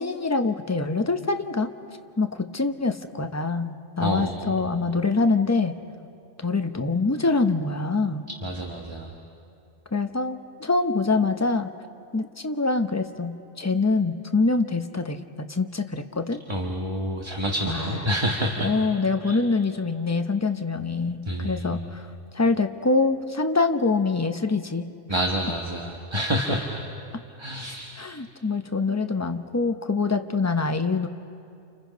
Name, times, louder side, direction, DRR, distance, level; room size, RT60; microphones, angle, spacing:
voice 1, 0.0-1.7 2.2-5.7 6.4-8.3 9.9-11.7 12.1-16.4 17.7-18.0 18.6-22.1 22.3-25.2 28.0-31.1, left 3 dB, 15° left, 7 dB, 0.7 m, -25 dB
voice 2, 4.0-4.7 8.4-9.1 16.5-18.7 19.2-19.4 21.3-21.8 25.1-26.8 27.4-27.9, equal, 20° right, 1 dB, 1.4 m, -28 dB
29.5 x 29.0 x 5.2 m, 2.5 s
omnidirectional pair, 1.3 m